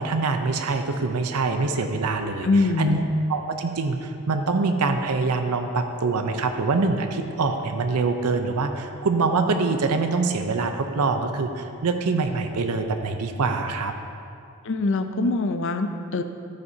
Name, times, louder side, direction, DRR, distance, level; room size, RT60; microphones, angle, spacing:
voice 1, 0.0-2.5 2.8-3.0 3.3-13.9, right 3 dB, 85° right, 6 dB, 0.6 m, -24 dB
voice 2, 2.4-3.1 14.6-16.2, left 2 dB, 55° left, 8 dB, 0.6 m, -23 dB
13.0 x 9.4 x 2.8 m, 2.5 s
head